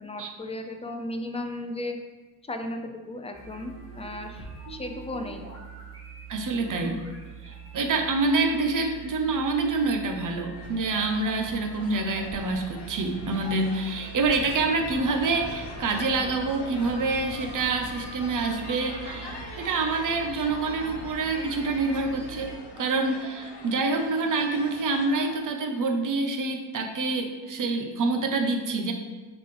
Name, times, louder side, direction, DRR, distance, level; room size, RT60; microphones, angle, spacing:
voice 1, 0.0-2.0 2.4-5.5, left 1 dB, 15° left, 5 dB, 0.5 m, -35 dB
sound 1, 3.3-22.5, right 4 dB, 30° right, 2.0 m, -42 dB
voice 2, 6.3-7.0 7.4-28.9, right 3 dB, 45° right, 3 dB, 0.8 m, -27 dB
sound 2, 10.5-25.4, left 3 dB, 65° left, 1.2 m, -44 dB
9.6 x 3.9 x 3.3 m, 1.3 s
wide cardioid pair, 155°, 44 cm